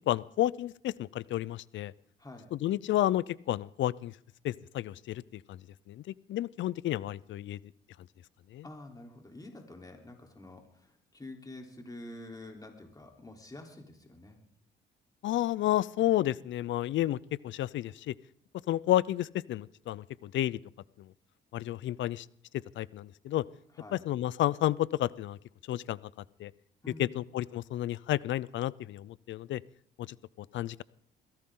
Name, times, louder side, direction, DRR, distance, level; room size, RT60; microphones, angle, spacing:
voice 1, 0.1-1.9 2.5-4.1 4.4-5.6 5.9-7.6 8.5-8.6 15.2-17.2 17.4-18.1 18.7-20.6 21.0-21.1 21.5-22.3 22.8-23.4 23.9-25.4 25.7-26.0 26.4-26.5 27.0-29.6 30.0-30.1 30.4-30.8, left 13 dB, 70° left, 22 dB, 0.5 m, -31 dB
voice 2, 2.2-2.5 8.6-14.4 23.7-24.0 26.8-27.2, left 1 dB, 20° left, 2 dB, 3.6 m, -48 dB
22.5 x 16.5 x 3.8 m, 0.64 s
cardioid pair, 90°, 20 cm